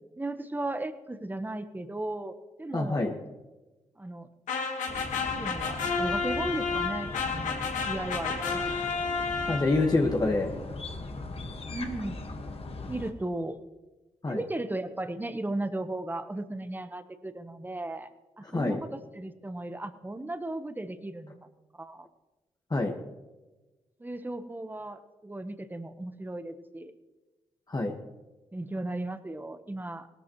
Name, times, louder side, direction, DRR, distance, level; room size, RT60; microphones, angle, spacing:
voice 1, 0.2-3.0 4.0-4.3 5.3-7.6 7.8-8.8 11.7-12.2 12.9-13.6 14.3-18.1 18.4-21.5 21.8-22.1 24.0-26.9 28.5-30.1, right 2 dB, 15° right, 10 dB, 1.1 m, -36 dB
voice 2, 2.7-3.2 9.5-10.5 14.2-14.4 18.5-18.8 22.7-22.9 27.7-27.9, left 2 dB, 30° left, 1 dB, 1.5 m, -26 dB
sound 1, 4.5-10.0, left 4 dB, 90° left, 1.6 m, -31 dB
sound 2, 4.9-13.1, left 2 dB, 50° left, 1.6 m, -39 dB
18.0 x 13.5 x 3.1 m, 1.1 s
cardioid pair, 55°, 12 cm